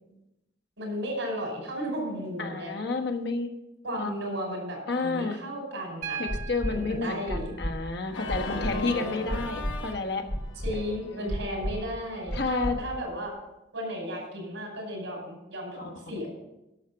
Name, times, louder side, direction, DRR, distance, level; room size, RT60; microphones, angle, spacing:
voice 1, 0.8-2.7 3.8-6.2 6.7-7.4 8.5-9.4 10.6-13.3 13.7-16.3, equal, 80° right, 0 dB, 5.3 m, -34 dB
voice 2, 2.4-3.5 3.9-4.1 4.9-5.4 6.2-10.3 11.1-11.4 12.3-12.8 15.8-16.0, left 3 dB, 60° left, 5 dB, 1.3 m, -30 dB
Piano, 6.0-10.0 11.6-11.7, right 6 dB, 40° right, 1.1 m, -42 dB
sound 1, 6.3-6.7 7.3-7.7 8.3-8.7 9.3-9.7 10.3-10.7 11.3-11.7 12.3-12.7 13.3-13.4, equal, 20° left, 1.3 m, -31 dB
Organ, 8.1-12.9, left 4 dB, 90° left, 1.1 m, -41 dB
11.5 x 6.6 x 7.0 m, 0.93 s
head